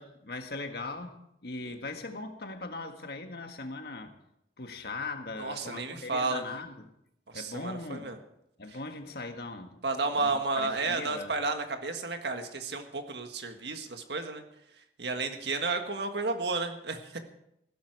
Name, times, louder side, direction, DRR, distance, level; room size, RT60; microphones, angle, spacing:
voice 1, 0.0-4.1 4.6-6.9 7.3-8.1 8.6-9.8 10.1-11.3, left 3 dB, 60° left, 6 dB, 1.6 m, -40 dB
voice 2, 5.4-6.4 7.3-8.2 9.8-14.4 15.0-17.2, right 3 dB, 70° right, 6 dB, 1.6 m, -32 dB
15.5 x 12.5 x 4.7 m, 0.79 s
head